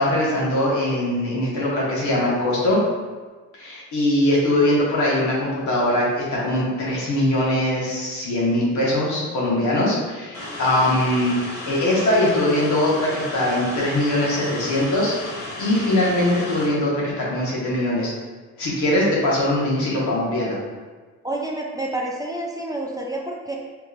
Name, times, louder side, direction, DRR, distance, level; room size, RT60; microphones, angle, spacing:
voice 1, 0.0-2.8 3.6-11.4 11.7-18.1 18.6-20.6, left 1 dB, 75° left, -5 dB, 1.2 m, -21 dB
sound 1, 10.3-16.7, left 2 dB, 50° left, 1.0 m, -34 dB
voice 2, 21.2-23.6, right 1 dB, 15° right, -2 dB, 0.3 m, -29 dB
3.5 x 2.9 x 2.4 m, 1.4 s
cardioid pair, 90°, 30 cm